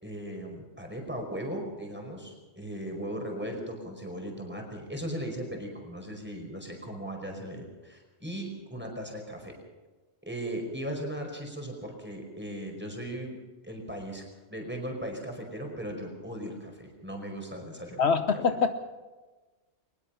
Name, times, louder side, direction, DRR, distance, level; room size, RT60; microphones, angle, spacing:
voice 1, 0.0-9.5 10.3-13.4 13.6-14.2 14.5-18.0, right 1 dB, 10° right, 2 dB, 5.0 m, -37 dB
voice 2, 18.0-18.7, left 5 dB, 65° left, 9 dB, 1.1 m, -24 dB
22.0 x 20.5 x 5.8 m, 1.3 s
omnidirectional pair, 1.2 m